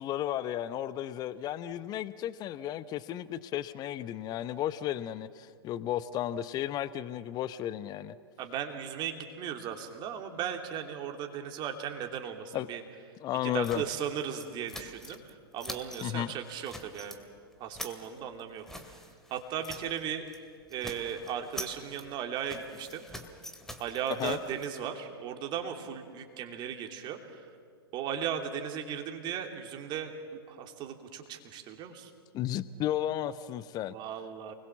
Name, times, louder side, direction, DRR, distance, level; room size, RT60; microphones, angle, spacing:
voice 1, 0.0-8.1 12.5-12.7 13.2-13.8 16.0-16.3 24.2-24.4 32.3-33.9, left 12 dB, 30° left, 15 dB, 0.8 m, -33 dB
voice 2, 8.4-12.8 13.4-15.2 15.5-17.2 17.6-19.0 19.3-20.3 20.7-23.0 23.8-27.5 27.9-32.1 33.9-34.5, right 8 dB, 35° right, 4 dB, 3.0 m, -37 dB
sound 1, 13.6-15.3 15.6-16.1 16.4-17.2 17.5-20.0 20.3-20.4 20.7-24.7, equal, 5° left, 2.2 m, -45 dB
29.0 x 21.0 x 7.3 m, 2.1 s
figure-of-eight pair, 100°, 13 cm